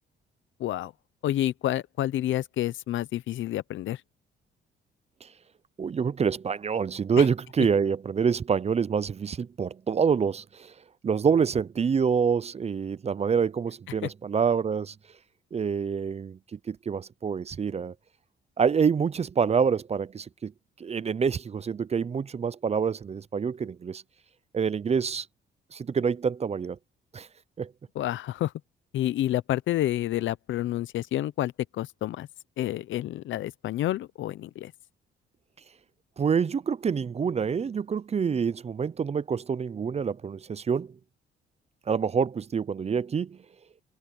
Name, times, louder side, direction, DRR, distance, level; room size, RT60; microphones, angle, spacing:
voice 1, 0.6-0.9 1.2-4.0 7.2-7.3 28.0-28.5 28.9-32.3 32.6-34.7, left 13 dB, 75° left, 0.7 m, -29 dB
voice 2, 5.8-10.7 11.0-14.9 15.5-17.9 18.6-20.5 20.8-24.0 24.5-25.3 25.7-26.8 27.1-27.3 27.6-27.7 36.2-41.0 41.9-43.4, right 6 dB, 30° right, 0.6 m, -26 dB
cardioid pair, 90°, 20 cm